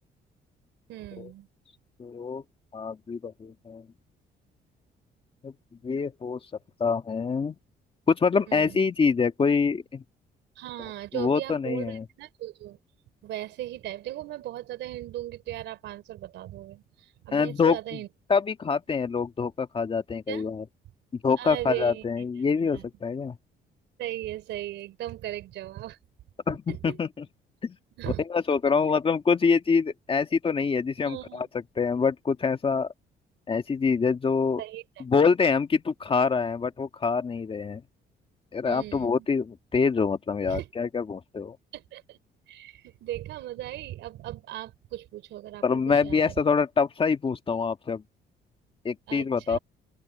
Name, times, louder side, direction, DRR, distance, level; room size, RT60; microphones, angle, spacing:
voice 1, 0.9-1.5 8.5-8.8 10.6-12.8 13.2-18.1 20.3-20.4 21.4-22.0 22.7-22.8 24.0-26.0 26.7-27.0 28.0-28.2 31.0-31.5 34.6-34.8 38.6-39.3 40.5-40.7 41.7-42.2 42.5-46.3 49.1-49.6, right 14 dB, 85° right, 4.1 m, -37 dB
voice 2, 2.0-2.4 2.7-3.8 5.4-5.5 5.8-6.4 6.8-7.6 8.1-10.0 11.1-12.0 17.3-17.8 18.3-20.6 21.2-23.4 26.5-27.2 27.6-27.8 28.3-31.5 31.8-32.9 33.5-34.6 35.0-37.8 38.5-41.6 45.6-48.0 48.8-49.6, left 5 dB, 30° left, 1.6 m, -25 dB
open air
cardioid pair, 120°, 18 cm